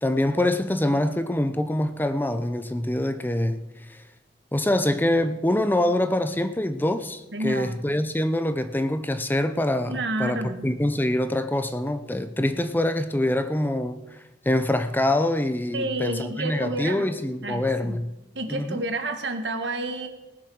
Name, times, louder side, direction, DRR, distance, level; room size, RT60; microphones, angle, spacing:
voice 1, 0.0-4.0 4.5-18.1 18.5-18.8, left 1 dB, 10° left, 0.6 m, -25 dB
voice 2, 7.3-7.8 9.9-10.7 15.7-17.1 17.4-18.0 18.3-20.1, right 2 dB, 75° right, 1.7 m, -30 dB
19.0 x 7.3 x 6.3 m
head